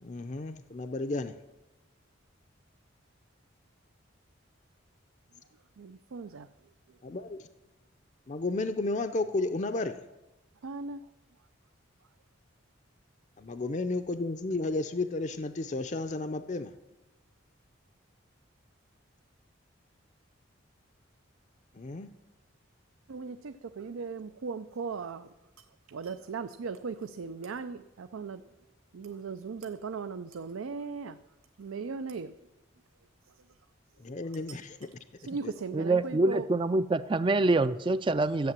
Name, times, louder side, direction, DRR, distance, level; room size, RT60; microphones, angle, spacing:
voice 1, 0.0-1.3 7.0-7.4 8.3-10.0 13.4-16.7 21.8-22.1 34.0-34.8, left 2 dB, 35° left, 8 dB, 0.5 m, -32 dB
voice 2, 5.8-6.5 10.6-11.0 23.1-25.3 25.6-28.4 28.9-31.2 31.6-32.3 34.5-34.6 35.2-36.5, right 5 dB, 85° right, 10 dB, 0.5 m, -38 dB
voice 3, 35.7-38.5, right 2 dB, 25° right, 12 dB, 0.3 m, -26 dB
12.5 x 8.4 x 7.4 m, 1.0 s
head